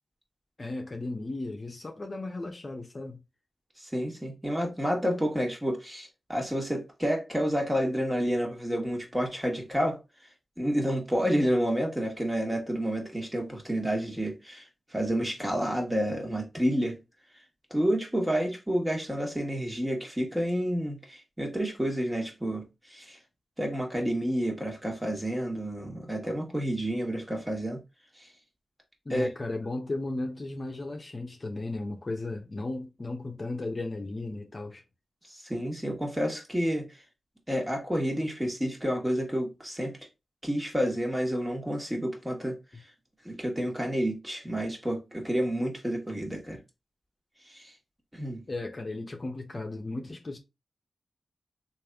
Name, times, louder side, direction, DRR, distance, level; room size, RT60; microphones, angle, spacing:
voice 1, 0.6-3.2 29.0-34.8 42.7-42.8 48.5-50.4, left 2 dB, 40° left, 0.8 m, -35 dB
voice 2, 3.8-10.0 10.6-14.7 14.9-17.0 17.7-22.6 22.9-23.2 23.6-27.8 29.1-29.3 35.3-36.9 37.5-40.0 40.4-42.6 43.2-46.6 47.5-47.7 48.1-48.4, equal, 15° right, 1.5 m, -29 dB
3.3 x 2.6 x 3.4 m
cardioid pair, 50°, 0 cm